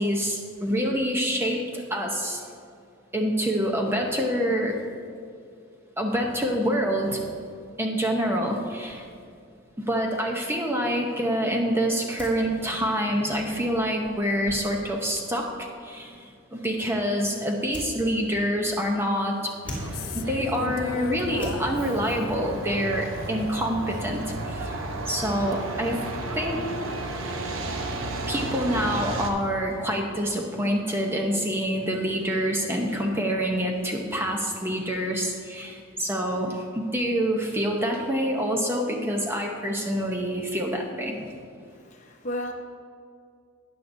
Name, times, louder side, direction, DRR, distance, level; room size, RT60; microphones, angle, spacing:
voice 1, 0.0-2.4 3.1-4.8 6.0-7.3 7.8-9.0 9.8-19.5 20.1-24.2 24.5-26.1 26.3-26.6 28.3-41.3, equal, 10° right, 1 dB, 0.7 m, -26 dB
sound 1, 8.8-25.7, equal, 5° left, 2.2 m, -47 dB
Truck, 19.6-29.3, right 2 dB, 80° right, 1.0 m, -33 dB
sound 2, 19.7-24.1, left 7 dB, 75° left, 0.3 m, -40 dB
voice 2, 41.7-42.5, equal, 35° left, 2 dB, 0.9 m, -34 dB
13.0 x 9.4 x 2.7 m, 2.3 s
head